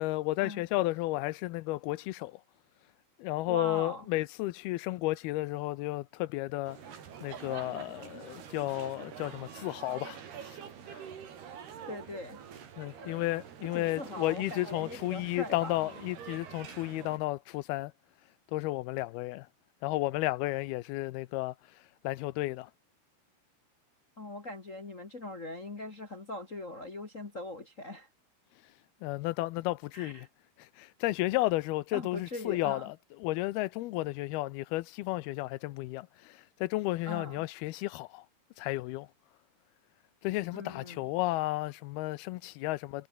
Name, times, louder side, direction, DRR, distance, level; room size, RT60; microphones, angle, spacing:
voice 1, 0.0-2.4 3.2-6.8 7.2-10.2 10.9-11.0 12.8-17.9 18.5-19.5 19.8-21.5 22.0-22.7 29.0-30.3 30.6-33.0 33.2-38.3 38.6-39.1 40.2-43.1, left 18 dB, 85° left, 2.6 m, -33 dB
voice 2, 3.5-4.1 11.9-12.4 13.0-13.3 13.7-15.9 24.2-28.1 29.9-30.3 31.9-32.9 37.0-37.5 40.5-41.0, left 1 dB, 40° left, 1.2 m, -41 dB
sound 1, 6.7-17.2, right 8 dB, 85° right, 5.3 m, -46 dB
omnidirectional pair, 4.5 m